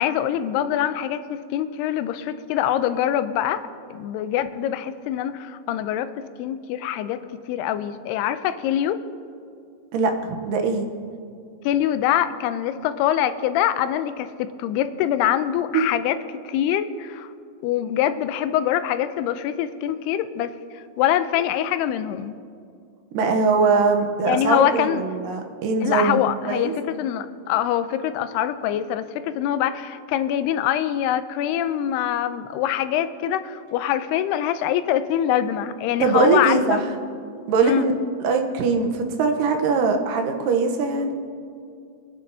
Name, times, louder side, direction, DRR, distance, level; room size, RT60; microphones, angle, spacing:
voice 1, 0.0-3.6 3.9-7.2 7.5-9.0 11.6-17.3 17.6-22.4 24.3-25.0 25.8-36.8 37.6-37.9, left 11 dB, 85° left, 12 dB, 2.6 m, -24 dB
voice 2, 10.4-10.9 15.7-15.8 23.1-26.2 26.4-26.7 36.0-36.8 37.5-41.1, right 4 dB, 75° right, 4 dB, 2.2 m, -21 dB
26.0 x 10.5 x 2.7 m, 2.4 s
omnidirectional pair, 4.6 m